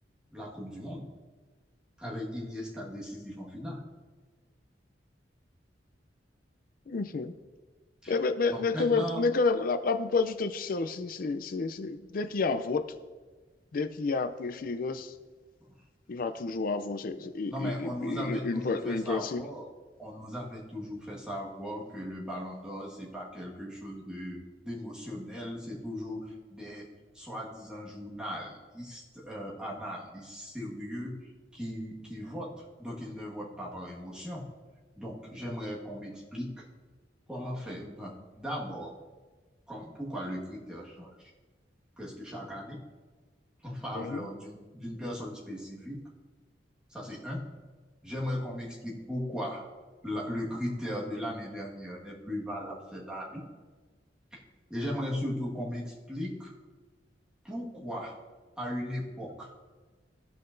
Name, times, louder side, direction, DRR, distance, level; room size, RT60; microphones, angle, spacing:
voice 1, 0.3-1.0 2.0-3.8 8.0-8.2 8.5-9.2 15.6-15.7 17.5-19.7 20.0-26.9 27.1-31.2 31.5-34.5 35.0-36.6 37.3-38.9 39.7-41.3 42.0-42.8 43.6-46.0 46.9-47.5 48.0-49.7 50.0-53.4 54.3-54.4 54.7-56.5 57.4-58.2 58.6-59.5, equal, 5° right, -6 dB, 1.6 m, -37 dB
voice 2, 6.9-7.3 8.1-12.9 13.7-15.1 16.1-19.4 43.9-44.3, left 4 dB, 50° left, 10 dB, 0.4 m, -30 dB
15.0 x 5.7 x 2.6 m, 1.3 s
head